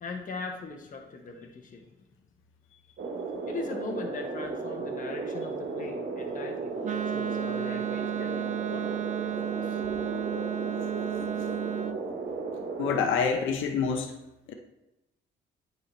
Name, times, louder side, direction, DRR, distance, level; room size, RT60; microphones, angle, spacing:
voice 1, 0.0-1.9 3.5-9.8, left 3 dB, 40° left, 2 dB, 1.1 m, -40 dB
sound 1, 3.0-13.0, right 4 dB, 55° right, 1.1 m, -35 dB
Wind instrument woodwind instrument, 6.8-12.0, right 11 dB, 40° right, 0.4 m, -33 dB
voice 2, 12.8-14.1 14.5-14.6, left 6 dB, 80° left, 4 dB, 0.8 m, -27 dB
9.2 x 4.6 x 3.3 m, 0.92 s
cardioid pair, 90°, 20 cm